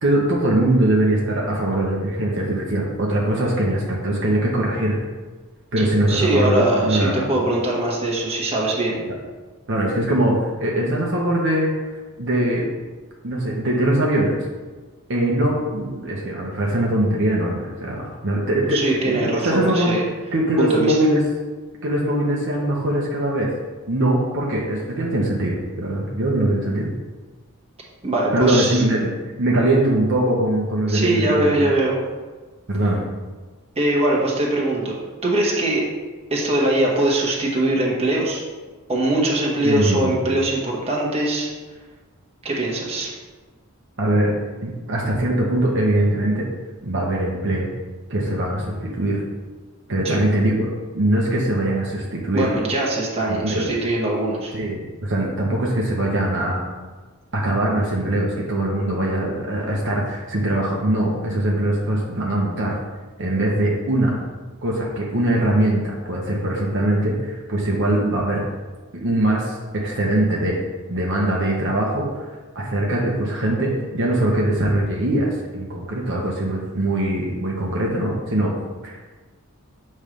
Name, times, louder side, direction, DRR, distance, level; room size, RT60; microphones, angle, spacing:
voice 1, 0.0-5.0 5.7-7.3 9.7-11.7 12.2-12.7 13.2-14.4 15.1-19.9 20.3-21.2 21.8-23.5 23.9-26.9 28.3-29.1 29.4-31.7 32.7-33.1 39.6-40.2 44.0-44.3 44.6-46.5 46.8-47.7 48.1-49.2 49.9-50.7 50.9-52.5 53.3-53.7 54.5-56.6 57.3-62.7 63.2-64.1 64.6-68.4 68.9-70.6 70.9-72.1 72.5-78.5 78.8-79.0, right 1 dB, 55° right, -3 dB, 0.8 m, -21 dB
voice 2, 6.1-9.0 18.7-20.0 20.6-21.0 28.0-28.8 30.9-32.0 33.8-35.0 35.2-35.8 36.3-38.4 38.9-41.5 42.4-43.1 50.0-50.2 52.3-54.5, right 1 dB, 25° right, -3 dB, 1.2 m, -21 dB
7.1 x 3.2 x 5.1 m, 1.3 s
head